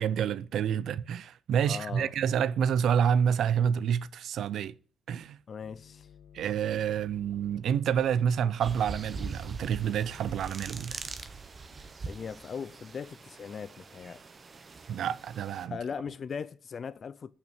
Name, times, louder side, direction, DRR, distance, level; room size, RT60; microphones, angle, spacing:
voice 1, 0.0-4.8 5.1-5.4 6.3-11.0 14.9-15.8, right 8 dB, 70° right, 0.5 m, -28 dB
voice 2, 1.7-2.1 5.5-6.1 12.1-14.2 15.7-17.3, left 6 dB, 45° left, 0.4 m, -39 dB
sound 1, 5.6-10.6, left 9 dB, 85° left, 0.8 m, -55 dB
sound 2, 8.6-15.7, right 4 dB, 40° right, 0.9 m, -42 dB
6.6 x 5.9 x 6.3 m
cardioid pair, 90°, 0 cm